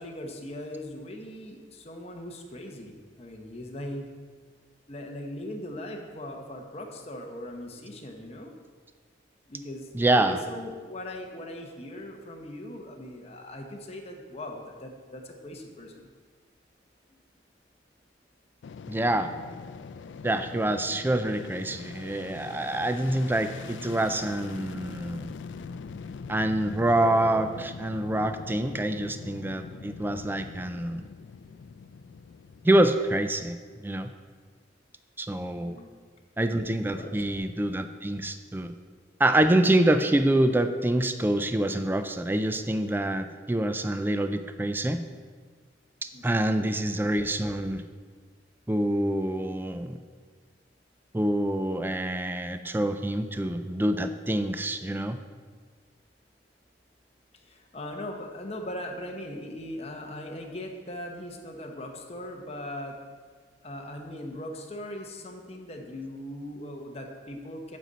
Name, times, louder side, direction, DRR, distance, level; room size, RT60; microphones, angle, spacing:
voice 1, 0.0-4.0 4.9-8.5 9.5-16.1 17.1-17.2 35.5-35.9 36.8-37.2 46.1-46.5 57.3-63.0 63.6-67.8, left 1 dB, 35° left, 2 dB, 1.0 m, -39 dB
voice 2, 9.9-10.4 18.9-19.3 20.2-25.3 26.3-31.0 32.6-34.1 35.2-35.8 36.4-38.7 39.2-45.0 46.0-47.8 48.7-49.9 51.1-55.2, right 1 dB, 10° right, 9 dB, 0.4 m, -26 dB
Fixed-wing aircraft airplane, 18.6-33.8, left 5 dB, 90° left, 0.4 m, -43 dB
9.1 x 7.6 x 4.1 m, 1.5 s
head